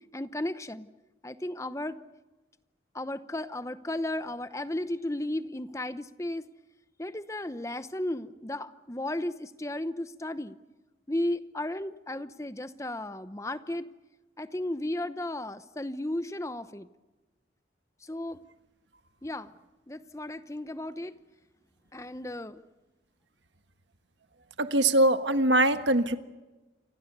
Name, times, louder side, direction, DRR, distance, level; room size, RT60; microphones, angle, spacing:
voice 1, 0.1-0.9 1.2-2.0 2.9-6.5 7.0-10.6 11.1-13.9 14.4-16.9 18.0-18.4 19.2-19.5 19.9-21.1 21.9-22.6, left 1 dB, 15° left, 12 dB, 0.9 m, -34 dB
voice 2, 24.6-26.2, right 1 dB, 80° right, 9 dB, 1.5 m, -22 dB
29.0 x 25.0 x 6.8 m, 1.1 s
head